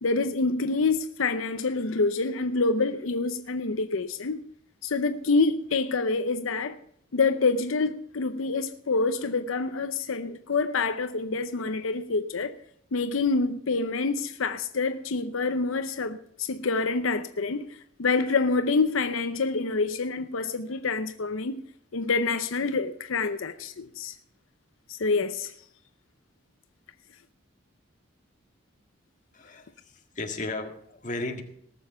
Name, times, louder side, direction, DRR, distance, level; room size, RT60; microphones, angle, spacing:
voice 1, 0.0-4.4 4.8-6.8 7.1-12.5 12.9-21.6 21.9-24.2 24.9-25.5, left 3 dB, 85° left, 0.7 m, -27 dB
voice 2, 29.3-31.4, left 2 dB, 40° left, 1.8 m, -35 dB
18.5 x 7.1 x 5.6 m
head